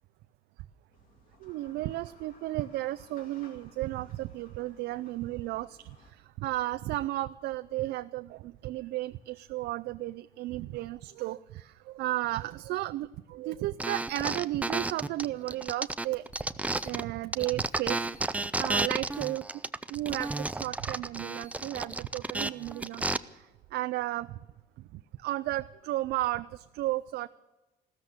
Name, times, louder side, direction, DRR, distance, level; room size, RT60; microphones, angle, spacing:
sound 1, 0.9-6.1, left 3 dB, 55° left, 2.6 m, -59 dB
voice 1, 1.4-16.3 16.8-19.4 19.9-23.1 23.3-24.3 24.9-27.3, right 16 dB, 75° right, 12 dB, 0.4 m, -34 dB
sound 2, 13.8-17.0 17.3-23.2, right 2 dB, 10° right, 0.4 m, -32 dB
15.0 x 13.5 x 6.5 m, 1.1 s
cardioid pair, 110°, 17 cm